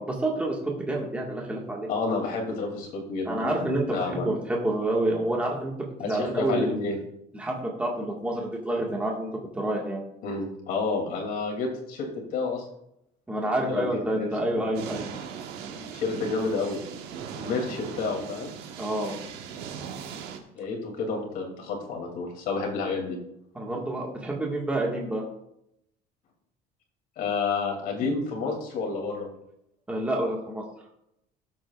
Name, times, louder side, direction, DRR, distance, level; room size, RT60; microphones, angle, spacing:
voice 1, 0.0-1.9 3.2-5.7 6.0-6.8 7.3-10.0 13.3-15.1 18.8-19.1 23.5-25.2 29.9-30.6, right 1 dB, 10° right, -2 dB, 1.7 m, -28 dB
voice 2, 1.9-4.3 6.0-7.0 10.2-12.6 13.5-14.6 15.9-16.8 17.3-18.5 20.5-23.2 27.2-29.3, left 4 dB, 60° left, 1 dB, 2.9 m, -30 dB
sound 1, 14.7-20.4, right 7 dB, 75° right, 1.3 m, -39 dB
17.5 x 7.7 x 2.5 m, 0.81 s
cardioid pair, 160°, 17 cm